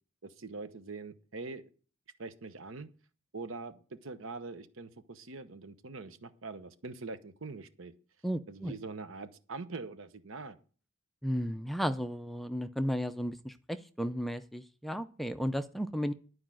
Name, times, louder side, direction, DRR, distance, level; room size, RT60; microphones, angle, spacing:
voice 1, 0.2-1.7 2.2-2.9 3.3-7.9 8.5-10.6, right 3 dB, 75° right, 11 dB, 0.9 m, -43 dB
voice 2, 8.2-8.7 11.2-16.1, equal, ahead, 9 dB, 0.4 m, -34 dB
11.5 x 4.8 x 7.5 m, 0.40 s
head